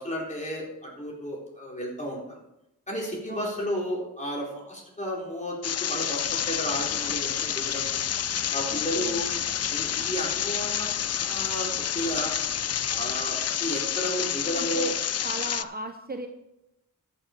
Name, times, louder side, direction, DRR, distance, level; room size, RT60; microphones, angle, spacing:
voice 1, 0.0-2.4 2.9-8.0 8.5-9.3 9.7-12.3 12.9-14.9, equal, 20° left, -3 dB, 4.1 m, -33 dB
voice 2, 3.3-3.6 8.7-9.3 14.7-14.9 15.2-16.3, right 2 dB, 25° right, 6 dB, 0.8 m, -37 dB
sound 1, 5.6-15.6, left 9 dB, 45° left, 0.4 m, -29 dB
sound 2, 6.1-13.3, right 3 dB, 55° right, 1.9 m, -49 dB
13.5 x 6.8 x 5.2 m, 0.88 s
wide cardioid pair, 75°, 34 cm